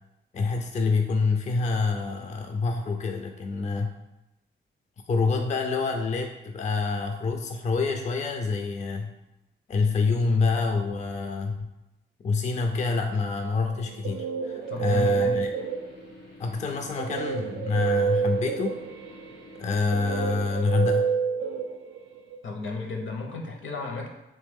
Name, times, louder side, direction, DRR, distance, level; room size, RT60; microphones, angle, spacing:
voice 1, 0.3-3.9 5.1-9.1 9.7-11.7 12.2-15.5 16.4-18.8 19.6-21.1, left 4 dB, 35° left, 4 dB, 0.4 m, -27 dB
Guitar, 13.7-16.2 17.0-22.4, right 6 dB, 85° right, 0.5 m, -29 dB
sound 1, 14.6-19.8, left 2 dB, 85° left, 1.3 m, -49 dB
voice 2, 14.7-15.4 22.4-24.1, left 3 dB, 65° left, 2 dB, 0.7 m, -33 dB
3.1 x 3.0 x 3.5 m, 0.94 s
cardioid pair, 60°, 21 cm